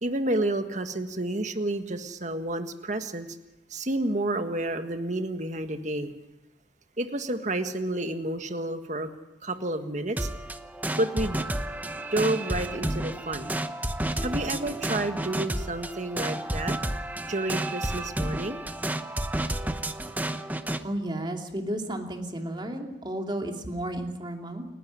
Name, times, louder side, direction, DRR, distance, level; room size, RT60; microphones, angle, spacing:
voice 1, 0.0-3.3 3.7-6.1 7.0-9.1 9.4-10.3 11.0-11.4 12.1-13.5 14.2-16.7 17.3-18.6, right 1 dB, 40° right, 7 dB, 1.7 m, -30 dB
sound 1, 10.2-20.8, right 1 dB, 10° right, 0.9 m, -31 dB
voice 2, 20.8-24.7, right 1 dB, 25° right, 3 dB, 2.8 m, -33 dB
29.0 x 12.0 x 9.7 m, 0.98 s
head